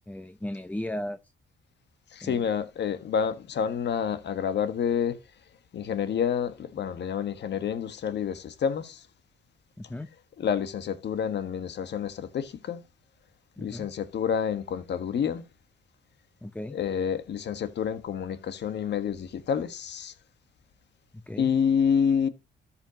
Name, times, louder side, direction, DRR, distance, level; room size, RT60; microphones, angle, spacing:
voice 1, 0.1-1.2 2.2-2.5 9.8-10.1 13.6-13.9 16.4-16.8 21.3-21.5, left 1 dB, 10° left, 0.8 m, -36 dB
voice 2, 2.1-5.2 5.7-9.1 10.4-12.8 13.6-15.4 16.7-20.1 21.4-22.3, left 7 dB, 60° left, 1.5 m, -28 dB
13.5 x 5.8 x 3.0 m
cardioid pair, 90°, 20 cm